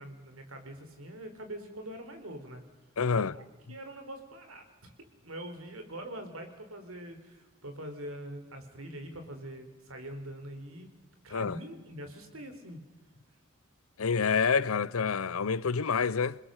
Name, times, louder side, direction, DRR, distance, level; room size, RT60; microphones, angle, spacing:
voice 1, 0.0-2.6 3.1-4.9 5.2-10.9 11.2-12.8, right 1 dB, 80° right, 4.0 m, -43 dB
voice 2, 3.0-3.3 11.3-11.6 14.0-16.4, left 5 dB, 85° left, 0.7 m, -27 dB
27.5 x 20.5 x 6.6 m
head